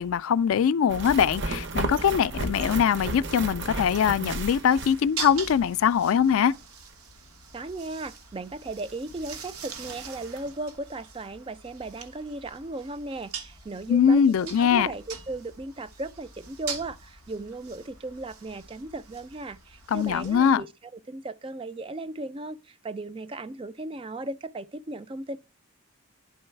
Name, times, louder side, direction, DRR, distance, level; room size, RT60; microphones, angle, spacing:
voice 1, 0.0-6.5 13.9-14.9 19.9-20.6, left 7 dB, 70° left, 0.3 m, -22 dB
sound 1, 0.9-5.6 5.8-5.9 8.9-9.0 9.4-9.5 9.7-10.4, right 2 dB, 55° right, 0.8 m, -33 dB
sound 2, 4.7-20.6, right 5 dB, 90° right, 1.3 m, -43 dB
voice 2, 7.5-25.4, right 2 dB, 25° right, 0.4 m, -36 dB
10.5 x 3.9 x 4.5 m
head